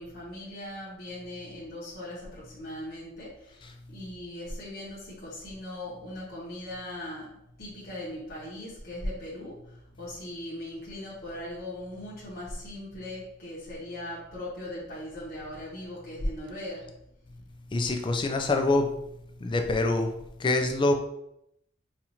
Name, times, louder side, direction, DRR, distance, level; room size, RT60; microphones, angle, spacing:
voice 1, 0.0-7.3 7.6-16.9, left 1 dB, 55° left, -7 dB, 0.9 m, -39 dB
voice 2, 17.7-18.9 19.4-20.1 20.4-20.9, left 2 dB, 25° left, 4 dB, 0.4 m, -25 dB
4.2 x 2.4 x 2.8 m, 0.79 s
head